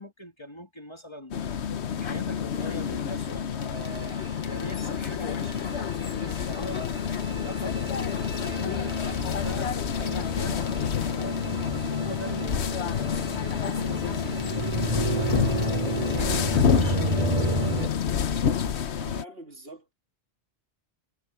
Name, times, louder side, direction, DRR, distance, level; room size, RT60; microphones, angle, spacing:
voice 1, 0.0-6.9 7.2-11.6 12.0-17.7, left 1 dB, 25° left, 1.6 m, -42 dB
sound 1, 1.3-19.2, left 7 dB, 80° left, 1.2 m, -28 dB
sound 2, 3.8-17.9, right 2 dB, 35° right, 2.4 m, -32 dB
voice 2, 19.0-19.9, right 1 dB, 65° right, 3.1 m, -44 dB
omnidirectional pair, 1.1 m